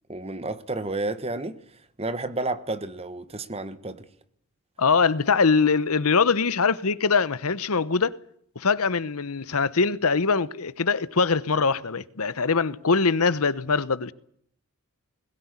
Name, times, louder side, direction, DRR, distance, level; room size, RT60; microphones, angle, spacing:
voice 1, 0.1-4.1, right 2 dB, 25° right, 1.3 m, -31 dB
voice 2, 4.8-8.1 8.6-14.1, left 4 dB, 80° left, 1.0 m, -22 dB
21.0 x 16.5 x 9.7 m
head